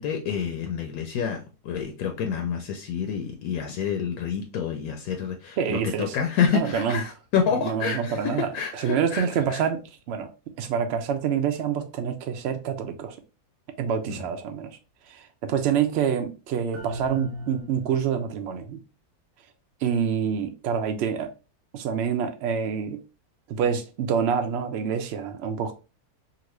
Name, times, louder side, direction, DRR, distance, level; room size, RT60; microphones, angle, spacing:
voice 1, 0.0-9.6 14.1-14.2, left 7 dB, 75° left, 1.0 m, -28 dB
voice 2, 5.6-6.2 6.5-7.0 7.5-8.5 8.7-10.3 10.6-13.2 13.8-14.8 15.1-18.8 19.8-21.3 21.7-23.0 23.5-25.7, right 7 dB, 70° right, 0.6 m, -27 dB
sound 1, 16.7-18.2, equal, 90° right, 1.1 m, -36 dB
2.9 x 2.5 x 3.0 m
omnidirectional pair, 1.6 m